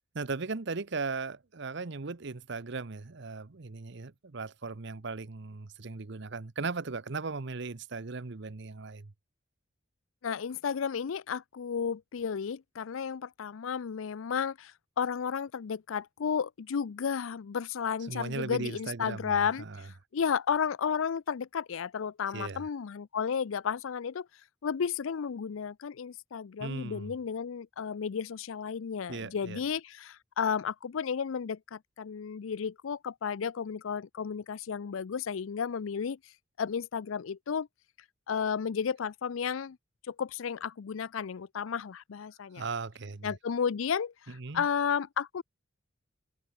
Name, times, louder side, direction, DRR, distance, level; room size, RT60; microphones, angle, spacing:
voice 1, 0.1-9.1 18.1-19.9 22.3-22.6 26.6-27.1 29.1-29.6 42.5-43.4 44.3-44.7, right 4 dB, 60° right, 0.9 m, -37 dB
voice 2, 10.2-24.3 24.6-36.2 36.6-37.7 38.3-39.8 40.1-42.6 43.2-45.4, left 7 dB, 80° left, 0.5 m, -33 dB
head